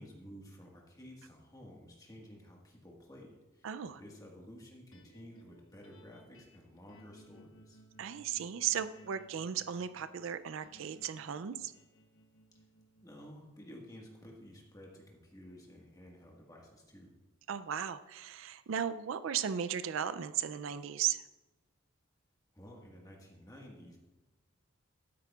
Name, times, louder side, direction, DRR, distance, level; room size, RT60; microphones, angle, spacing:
voice 1, 0.0-7.8 13.0-17.1 22.5-24.0, equal, 15° left, -1 dB, 1.5 m, -53 dB
voice 2, 3.6-4.0 8.0-11.7 17.5-21.2, right 9 dB, 70° right, 13 dB, 0.4 m, -36 dB
sound 1, 4.9-17.2, right 1 dB, 75° left, 1.1 m, -63 dB
12.5 x 9.6 x 2.4 m, 1.1 s
head